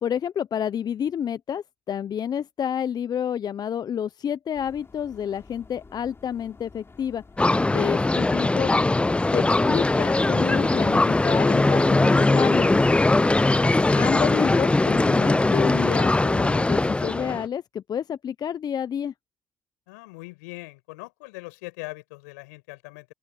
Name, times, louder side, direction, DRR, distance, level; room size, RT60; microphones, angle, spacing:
voice 1, 0.0-7.2 7.7-8.8 9.3-12.7 13.9-19.1, left 8 dB, 50° left, 0.8 m, -29 dB
sound 1, 4.5-12.5, left 4 dB, 30° left, 4.0 m, -50 dB
sound 2, 7.4-17.4, left 2 dB, 15° left, 0.5 m, -20 dB
voice 2, 13.4-14.0 19.9-23.1, left 25 dB, 85° left, 6.0 m, -41 dB
open air
hypercardioid pair, 55°, 9 cm